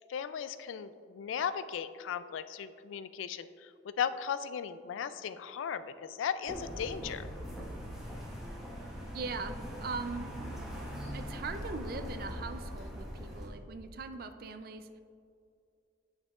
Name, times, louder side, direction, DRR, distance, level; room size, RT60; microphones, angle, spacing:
voice 1, 0.1-3.7 4.0-7.3, left 7 dB, 85° left, 13 dB, 0.3 m, -36 dB
sound 1, 6.5-13.5, equal, 5° right, 1.2 m, -41 dB
voice 2, 9.1-10.3 11.1-15.0, right 4 dB, 50° right, 8 dB, 0.4 m, -40 dB
8.9 x 6.5 x 2.4 m, 2.4 s
head